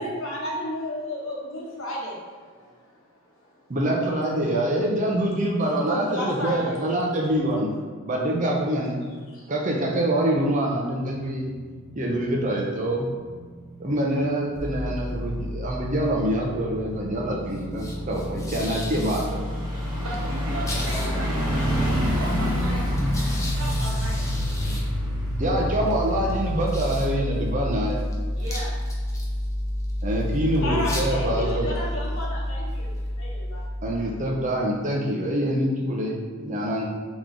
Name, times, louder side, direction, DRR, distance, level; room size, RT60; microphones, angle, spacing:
voice 1, 0.0-3.0 3.4-3.5 5.3-7.0 9.3-9.5 30.6-33.7, left 1 dB, 70° left, -3 dB, 1.0 m, -33 dB
voice 2, 3.7-9.0 9.5-11.5 12.0-13.1 13.8-19.4 25.4-28.0 30.0-31.7 33.8-36.8, right 1 dB, 35° right, -1 dB, 0.6 m, -25 dB
sound 1, 11.2-27.7 28.1-28.2, equal, 20° right, 1.2 m, -32 dB
sound 2, 14.6-34.5, left 1 dB, 15° left, 0.5 m, -29 dB
voice 3, 19.9-21.6 21.8-22.9 23.4-24.3 28.4-28.8, right 1 dB, 65° right, -3 dB, 0.9 m, -36 dB
3.8 x 3.0 x 3.7 m, 1.5 s
head